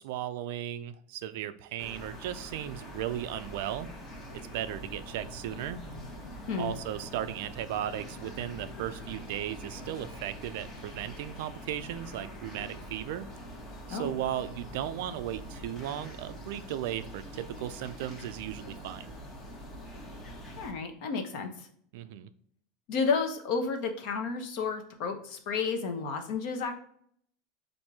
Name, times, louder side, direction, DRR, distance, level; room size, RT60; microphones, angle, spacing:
voice 1, 0.0-3.9 4.3-5.8 6.6-13.3 13.9-19.1 21.9-22.3, right 11 dB, 60° right, 12 dB, 0.3 m, -36 dB
sound 1, 1.8-20.7, equal, 20° left, 0.8 m, -44 dB
voice 2, 20.6-21.5 22.9-26.8, left 5 dB, 50° left, 5 dB, 0.8 m, -31 dB
4.3 x 2.6 x 4.6 m, 0.62 s
supercardioid pair, 175°, 0 cm